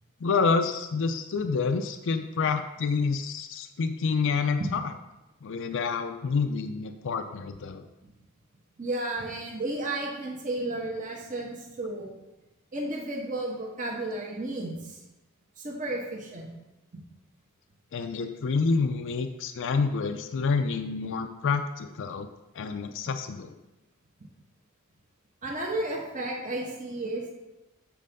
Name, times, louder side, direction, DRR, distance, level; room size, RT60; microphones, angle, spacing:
voice 1, 0.2-4.8 5.4-7.9 17.9-22.3 22.5-23.5, left 4 dB, 60° left, 7 dB, 0.4 m, -28 dB
voice 2, 8.8-12.1 12.7-15.0 15.6-16.5 25.4-27.3, right 2 dB, 35° right, -2 dB, 1.2 m, -33 dB
7.5 x 4.4 x 5.2 m, 1.0 s
head